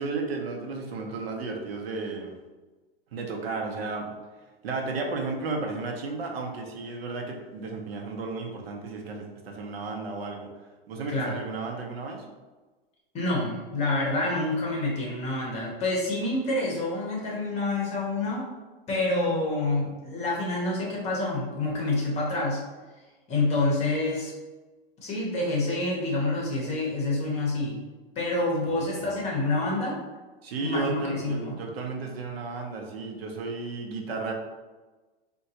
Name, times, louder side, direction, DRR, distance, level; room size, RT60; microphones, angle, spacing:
voice 1, 0.0-2.3 3.1-4.2 4.6-10.5 10.9-12.2 28.6-29.2 30.4-34.3, right 3 dB, 75° right, 1 dB, 0.7 m, -33 dB
voice 2, 11.1-11.4 13.1-18.5 18.9-22.6 23.3-24.3 25.0-27.8 28.2-30.0 30.6-31.6, left 2 dB, 20° left, -2 dB, 0.7 m, -27 dB
3.6 x 2.3 x 2.7 m, 1.2 s
hypercardioid pair, 135°, 30 cm